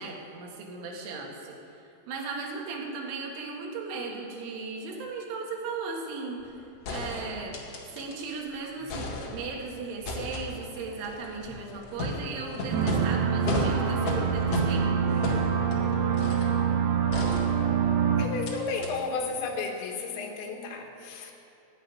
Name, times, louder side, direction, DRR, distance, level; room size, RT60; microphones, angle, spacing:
voice 1, 0.0-1.6 2.1-6.5 6.9-7.6 7.9-15.4, right 4 dB, 85° right, 0 dB, 4.4 m, -37 dB
sound 1, 6.4-6.5 6.8-8.4 8.7-9.6 10.0-16.6 17.1-18.0 18.4-18.5 18.8-18.9, left 1 dB, 50° left, 2.0 m, -34 dB
sound 2, 12.7-18.3, right 7 dB, 65° right, 2.7 m, -25 dB
voice 2, 18.2-21.3, left 4 dB, 75° left, 2 dB, 3.8 m, -33 dB
16.5 x 8.2 x 9.9 m, 2.9 s
omnidirectional pair, 5.4 m